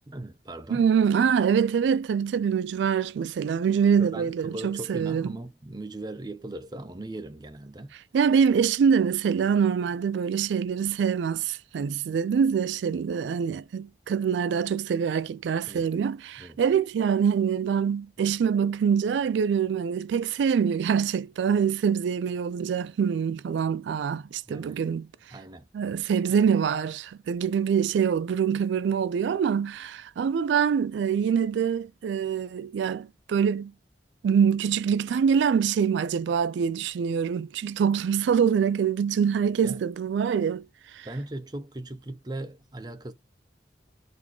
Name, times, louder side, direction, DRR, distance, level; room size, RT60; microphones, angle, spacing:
voice 1, 0.1-0.8 4.0-7.9 15.7-15.9 16.4-16.6 24.5-24.8 25.3-25.7 26.1-26.3 39.6-39.8 41.0-43.1, right 2 dB, 25° right, 0.6 m, -38 dB
voice 2, 0.7-5.3 8.1-25.1 25.7-33.7 34.2-40.6 40.9-41.1, right 7 dB, 80° right, 0.3 m, -25 dB
4.0 x 3.5 x 3.0 m
head